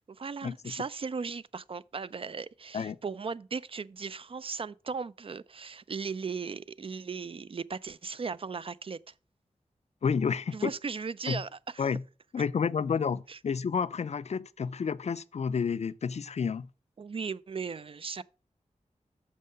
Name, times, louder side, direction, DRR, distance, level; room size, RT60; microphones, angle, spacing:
voice 1, 0.1-9.1 10.5-11.9 13.3-13.4 17.0-18.2, right 5 dB, 45° right, 0.4 m, -37 dB
voice 2, 10.0-10.7 11.3-11.4 11.8-12.0 12.3-16.7, left 6 dB, 60° left, 0.4 m, -30 dB
6.5 x 5.4 x 5.4 m
wide cardioid pair, 65°, 13 cm